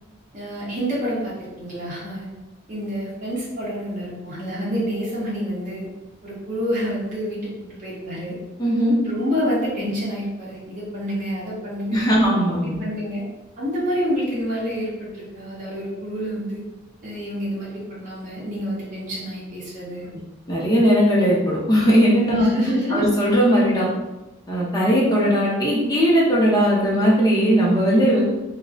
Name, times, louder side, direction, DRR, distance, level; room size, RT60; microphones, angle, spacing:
voice 1, 0.3-2.3 2.7-5.9 6.2-8.4 9.0-12.1 12.6-13.2 13.6-16.6 17.0-20.1 22.3-23.1, equal, 40° right, -7 dB, 0.7 m, -28 dB
voice 2, 8.6-8.9 11.9-12.8 20.5-22.5 22.9-23.9 24.5-28.2, equal, 20° left, -5 dB, 0.5 m, -18 dB
2.5 x 2.1 x 2.3 m, 1.0 s
head